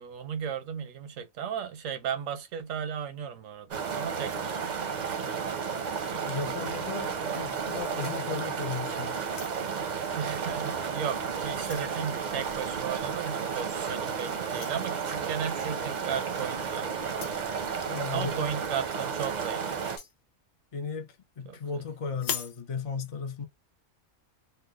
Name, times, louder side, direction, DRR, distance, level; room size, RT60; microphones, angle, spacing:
voice 1, 0.0-4.8 5.2-5.6 6.9-7.1 10.1-17.6 18.1-19.7 21.4-21.9, right 8 dB, 90° right, 1.1 m, -35 dB
sound 1, 3.7-20.0, right 6 dB, 50° right, 0.5 m, -33 dB
voice 2, 6.2-9.2 17.9-18.5 20.7-23.4, left 5 dB, 60° left, 0.3 m, -36 dB
sound 2, 7.6-8.8 9.2-9.8 10.6-10.8 11.2-12.0 13.4-13.6 14.5-14.8 16.1-16.3 17.1-17.5 19.7-20.2 22.1-22.6, left 8 dB, 80° left, 1.0 m, -40 dB
3.2 x 2.1 x 3.4 m
omnidirectional pair, 1.3 m